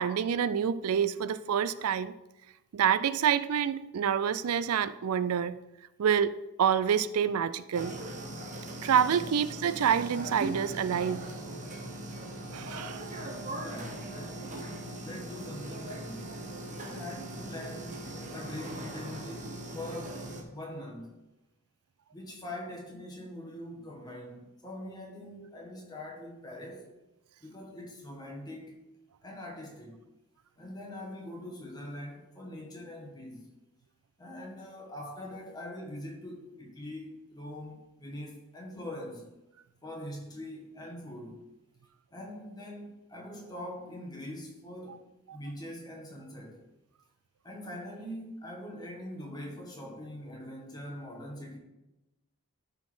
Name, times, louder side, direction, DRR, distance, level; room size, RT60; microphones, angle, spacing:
voice 1, 0.0-2.1 2.7-5.6 6.0-8.0 8.8-11.2 12.5-13.2 45.3-45.4, right 8 dB, 90° right, 14 dB, 0.4 m, -27 dB
sound 1, 7.7-20.4, right 1 dB, 35° right, 1.2 m, -40 dB
voice 2, 13.6-14.5 15.0-16.3 16.7-21.1 22.1-26.9 27.4-28.8 29.2-30.0 30.6-33.5 34.2-39.3 39.8-41.4 42.1-45.0 45.3-46.6 47.4-51.6, left 1 dB, 20° left, -1 dB, 1.7 m, -43 dB
12.0 x 4.2 x 4.9 m, 0.98 s
head